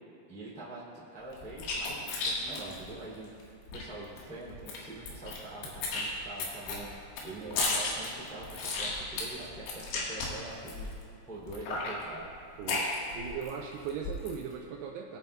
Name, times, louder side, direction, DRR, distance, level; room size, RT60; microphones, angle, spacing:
voice 1, 0.3-6.9 7.2-10.9 11.3-12.3, right 2 dB, 5° left, -7 dB, 1.2 m, -44 dB
sound 1, 1.3-3.8 4.2-4.3 4.5-5.4 5.6-11.0 11.5-13.5 13.8-14.4, left 3 dB, 80° left, 3.9 m, -34 dB
voice 2, 12.6-15.2, right 7 dB, 90° right, 1 dB, 2.4 m, -39 dB
22.0 x 9.1 x 2.3 m, 2.4 s
omnidirectional pair, 5.3 m